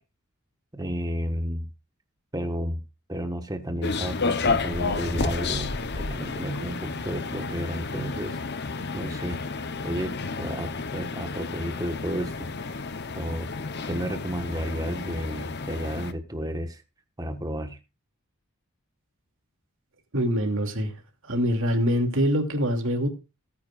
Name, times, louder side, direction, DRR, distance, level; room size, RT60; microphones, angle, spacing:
voice 1, 0.7-1.7 2.3-2.8 3.1-8.4 8.9-9.4 9.8-12.8 13.1-13.6 13.8-16.8 17.2-17.8, equal, 15° right, 1.4 m, -32 dB
sound 1, 3.8-16.1, left 4 dB, 50° left, 0.9 m, -31 dB
voice 2, 20.1-20.9 21.2-23.1, equal, 60° right, 2.7 m, -24 dB
19.0 x 9.7 x 2.5 m
head